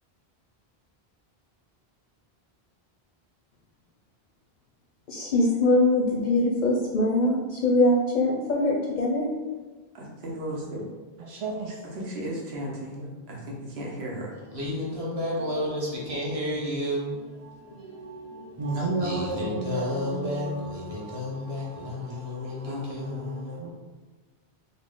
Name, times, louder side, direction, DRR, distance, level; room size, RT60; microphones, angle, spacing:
voice 1, 5.1-9.3, left 2 dB, 55° left, -1 dB, 0.6 m, -22 dB
voice 2, 9.9-10.8 11.9-14.3 22.6-23.7, equal, 80° right, -2 dB, 1.0 m, -36 dB
voice 3, 11.2-11.9 18.6-21.9 23.6-23.7, right 2 dB, 55° right, -3 dB, 0.3 m, -33 dB
voice 4, 14.4-23.7, left 1 dB, 35° right, -5 dB, 0.9 m, -32 dB
4.0 x 2.1 x 3.6 m, 1.3 s
omnidirectional pair, 1.1 m